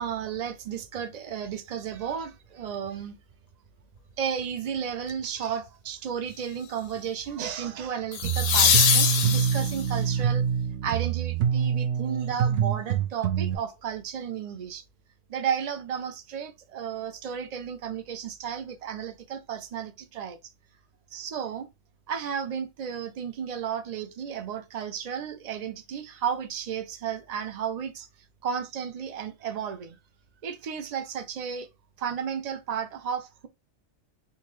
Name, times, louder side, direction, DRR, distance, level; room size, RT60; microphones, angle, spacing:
voice 1, 0.0-3.2 4.2-10.4 10.8-14.8 15.3-20.4 21.1-21.7 22.1-28.1 28.4-30.0 30.4-31.7 32.0-33.5, right 7 dB, 50° right, 0.5 m, -33 dB
sound 1, 5.1-5.4 8.1-10.0 12.9-13.0, left 7 dB, 85° left, 1.0 m, -23 dB
sound 2, 8.2-13.6, right 8 dB, 70° right, 0.9 m, -26 dB
3.9 x 2.5 x 3.0 m
omnidirectional pair, 1.3 m